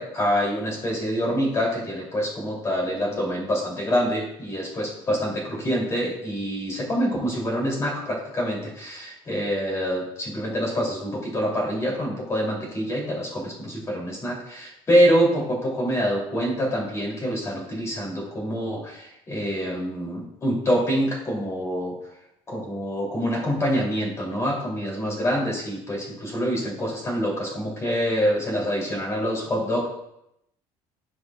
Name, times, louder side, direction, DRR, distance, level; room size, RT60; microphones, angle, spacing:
voice 1, 0.0-22.0 22.5-29.9, equal, 25° left, -2 dB, 3.0 m, -26 dB
15.0 x 5.3 x 2.4 m, 0.82 s
cardioid pair, 150°, 11 cm